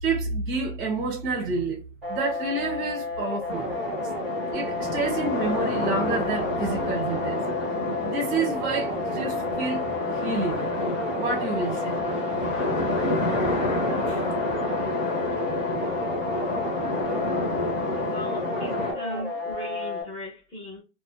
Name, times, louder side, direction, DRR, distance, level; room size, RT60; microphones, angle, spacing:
voice 1, 0.0-1.8 2.1-3.8 4.5-7.5 8.0-9.8 10.1-10.6 11.1-12.0 14.1-14.2, right 3 dB, 20° right, 0.7 m, -29 dB
sound 1, 2.0-20.0, left 3 dB, ahead, 0.3 m, -32 dB
sound 2, 3.5-18.9, left 2 dB, 40° left, 1.2 m, -29 dB
voice 2, 18.0-20.8, left 1 dB, 15° left, 0.8 m, -37 dB
2.6 x 2.2 x 2.3 m
supercardioid pair, 160°, 37 cm